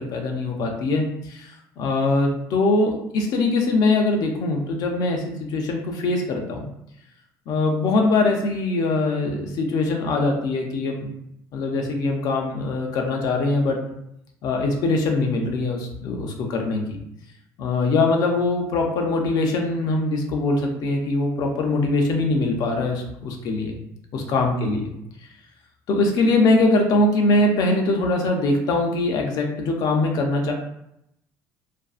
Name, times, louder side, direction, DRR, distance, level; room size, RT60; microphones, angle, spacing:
voice 1, 0.0-6.7 7.5-11.1 11.5-13.8 14.4-17.0 17.6-23.8 24.1-24.9 25.9-30.5, left 2 dB, 65° left, 2 dB, 0.5 m, -22 dB
2.5 x 2.3 x 2.3 m, 0.78 s
supercardioid pair, 85°, 7 cm